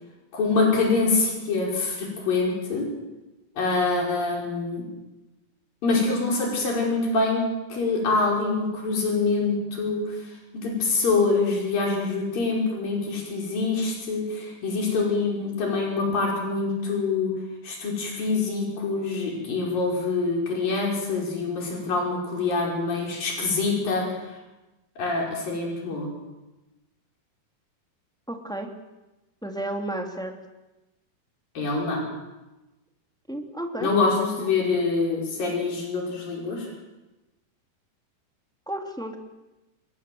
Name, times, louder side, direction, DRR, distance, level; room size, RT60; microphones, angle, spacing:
voice 1, 0.3-2.8 3.6-4.8 5.8-7.4 7.7-10.2 10.5-17.3 17.6-24.2 25.0-26.1 31.6-32.0 33.8-36.7, left 3 dB, 90° left, -1 dB, 7.1 m, -25 dB
voice 2, 28.3-28.7 29.4-30.3 33.3-33.9 38.7-39.2, right 1 dB, ahead, 3 dB, 2.1 m, -32 dB
28.0 x 22.0 x 7.8 m, 1.1 s
omnidirectional pair, 3.9 m